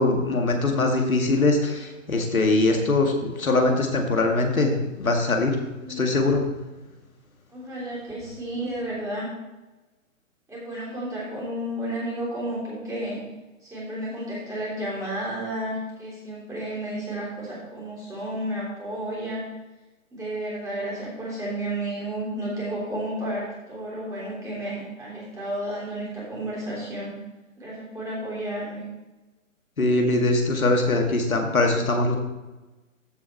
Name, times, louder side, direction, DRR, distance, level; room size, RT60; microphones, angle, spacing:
voice 1, 0.0-5.5 6.0-6.4 29.8-32.1, left 2 dB, 85° left, 2 dB, 2.1 m, -22 dB
voice 2, 5.8-6.3 7.5-9.3 10.5-13.2 13.6-19.4 20.1-27.1 27.6-28.8, right 1 dB, 10° right, -6 dB, 3.4 m, -32 dB
14.0 x 4.9 x 4.5 m, 1.1 s
figure-of-eight pair, 140°, 41 cm